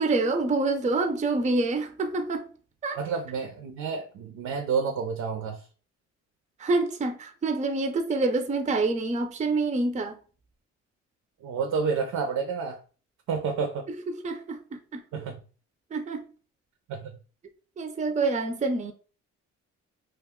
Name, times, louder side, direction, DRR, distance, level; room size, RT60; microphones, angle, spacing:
voice 1, 0.0-2.5 2.8-3.0 6.6-10.2 14.1-15.0 15.9-16.3 17.8-18.9, right 3 dB, 25° right, 0.4 m, -27 dB
voice 2, 3.0-5.7 11.4-12.8 13.3-13.9 15.1-15.4 16.9-17.0, right 5 dB, 70° right, 0.6 m, -29 dB
2.4 x 2.3 x 3.5 m
cardioid pair, 90°, 30 cm